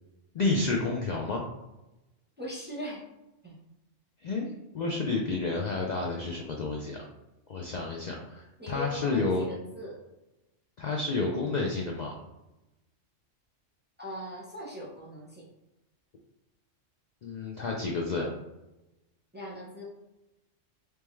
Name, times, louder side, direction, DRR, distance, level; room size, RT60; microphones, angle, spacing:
voice 1, 0.3-1.4 4.2-4.5 4.7-7.0 7.5-9.5 10.8-12.1 17.2-18.3, left 3 dB, 75° left, 0 dB, 0.4 m, -30 dB
voice 2, 2.4-3.0 3.4-3.6 8.6-10.0 14.0-15.5 19.3-19.8, equal, 10° right, -5 dB, 0.5 m, -40 dB
3.5 x 2.9 x 3.1 m, 0.98 s
omnidirectional pair, 1.3 m